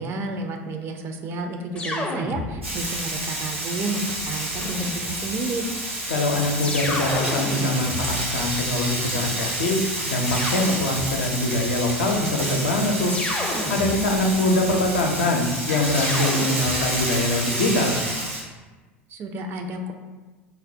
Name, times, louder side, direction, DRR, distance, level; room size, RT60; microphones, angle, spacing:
voice 1, 0.0-5.6 19.1-19.9, right 2 dB, 35° right, 4 dB, 0.4 m, -31 dB
sound 1, 1.7-3.0 4.5-5.3 6.6-8.9 10.2-11.4 13.1-14.4 15.9-17.1, left 1 dB, 15° left, 0.5 m, -31 dB
Frying (food), 2.6-18.4, right 1 dB, 90° right, 0.8 m, -29 dB
voice 2, 6.1-13.2 13.7-18.0, left 2 dB, 70° left, 2 dB, 0.5 m, -23 dB
4.2 x 2.1 x 2.6 m, 1.3 s
figure-of-eight pair, 75°, 7 cm